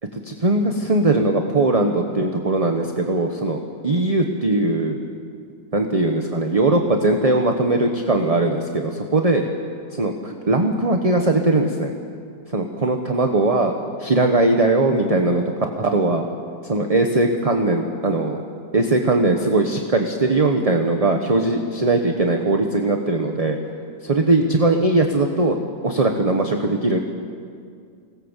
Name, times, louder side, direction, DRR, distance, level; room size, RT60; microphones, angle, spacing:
voice 1, 0.1-5.0 5.7-9.4 9.9-11.9 12.5-13.7 14.0-16.2 16.6-18.4 18.7-23.6 24.0-25.6 25.8-27.0, right 2 dB, 25° right, 4 dB, 1.0 m, -20 dB
25.5 x 18.5 x 7.4 m, 2.3 s
omnidirectional pair, 1.8 m